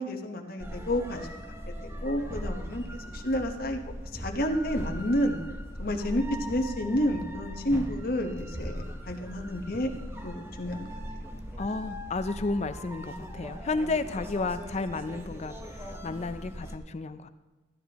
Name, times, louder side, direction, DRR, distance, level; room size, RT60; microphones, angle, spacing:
voice 1, 0.0-1.4 1.8-3.8 4.1-5.4 5.8-9.9 10.2-10.9, equal, 55° left, 3 dB, 1.2 m, -30 dB
sound 1, 0.6-16.8, equal, 15° right, 1.0 m, -39 dB
voice 2, 11.6-17.3, left 3 dB, 40° left, 12 dB, 0.5 m, -32 dB
15.0 x 10.5 x 3.0 m, 1.2 s
head